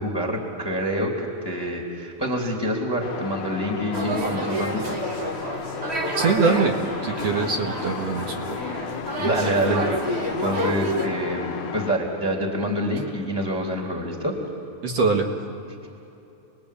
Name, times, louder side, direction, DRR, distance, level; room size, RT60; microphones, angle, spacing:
voice 1, 0.0-5.0 9.2-14.4, equal, 5° left, 0 dB, 2.4 m, -26 dB
sound 1, 3.0-11.9, left 7 dB, 70° left, 3.1 m, -34 dB
sound 2, 3.9-11.1, right 1 dB, 80° right, 0.5 m, -29 dB
voice 2, 6.2-6.8 7.0-8.6 14.8-15.3, right 4 dB, 50° right, 3 dB, 2.2 m, -23 dB
29.5 x 21.5 x 8.6 m, 2.8 s
omnidirectional pair, 4.9 m